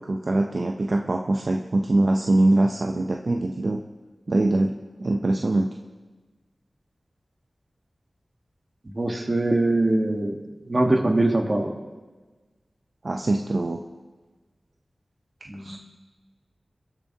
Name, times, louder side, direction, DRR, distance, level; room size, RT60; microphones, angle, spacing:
voice 1, 0.0-3.8 4.3-5.7 13.0-13.8 15.6-15.8, right 2 dB, 55° right, 2 dB, 0.5 m, -23 dB
voice 2, 8.9-10.4 10.7-11.7 15.5-15.8, right 2 dB, 40° right, 4 dB, 1.2 m, -22 dB
19.0 x 7.3 x 2.7 m, 1.3 s
wide cardioid pair, 70°, 0 cm